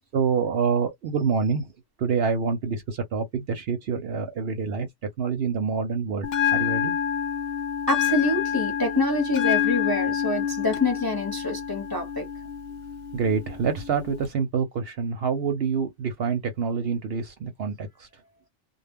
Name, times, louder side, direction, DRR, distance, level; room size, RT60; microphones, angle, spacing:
voice 1, 0.1-1.6 2.0-4.9 5.2-7.0 13.1-18.1, right 5 dB, 60° right, 0.7 m, -26 dB
Bell, 6.2-14.2, left 9 dB, 65° left, 0.7 m, -28 dB
voice 2, 7.9-12.3, left 2 dB, 25° left, 0.6 m, -26 dB
2.2 x 2.1 x 3.4 m
omnidirectional pair, 1.3 m